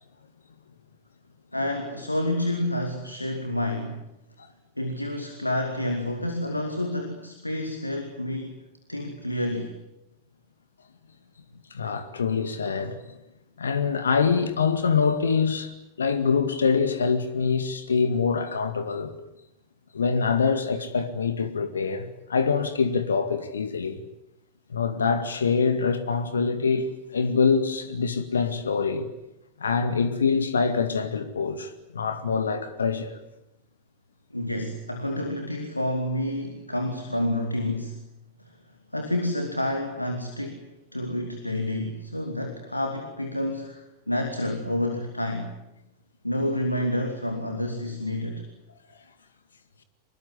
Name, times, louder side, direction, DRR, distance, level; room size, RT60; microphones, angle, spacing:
voice 1, 1.5-4.1 4.8-8.6 8.9-9.7 34.3-38.0 38.4-38.5 38.9-45.5 46.2-48.5, left 1 dB, 85° left, 2.6 m, -29 dB
voice 2, 11.7-13.0 13.6-15.7 16.0-19.1 19.9-24.0 24.7-29.1 29.6-33.1, left 5 dB, 70° left, 2.1 m, -25 dB
25.0 x 22.0 x 9.9 m
figure-of-eight pair, 90°, 0 cm